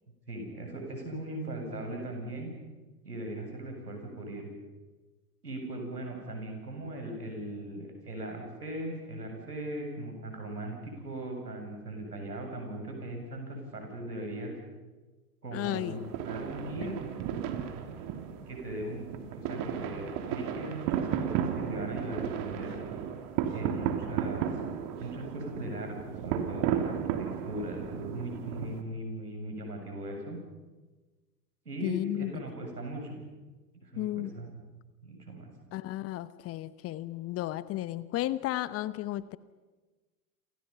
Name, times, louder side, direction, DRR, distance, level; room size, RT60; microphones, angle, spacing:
voice 1, 0.3-2.5 3.0-4.5 5.4-14.5 15.4-17.0 18.5-19.0 19.3-22.8 23.5-24.5 25.0-30.4 31.6-33.2 33.7-34.5 35.0-35.5, right 1 dB, 85° right, 2 dB, 7.8 m, -39 dB
voice 2, 15.5-16.0 16.8-17.0 31.8-32.3 34.0-34.3 35.7-39.4, left 15 dB, 30° left, 16 dB, 1.0 m, -33 dB
sound 1, 15.6-28.8, right 9 dB, 45° right, 3.0 m, -34 dB
28.5 x 28.0 x 5.7 m, 1.2 s
figure-of-eight pair, 90°, 46 cm